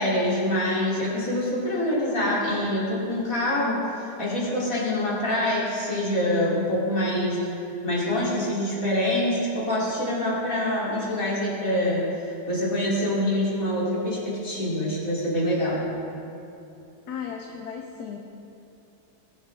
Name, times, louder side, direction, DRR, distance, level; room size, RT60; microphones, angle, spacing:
voice 1, 0.0-7.4 7.8-15.8, left 1 dB, 50° left, -6 dB, 3.6 m, -25 dB
voice 2, 17.1-18.2, left 7 dB, 65° left, 1 dB, 1.3 m, -35 dB
20.5 x 11.5 x 3.5 m, 2.8 s
omnidirectional pair, 2.0 m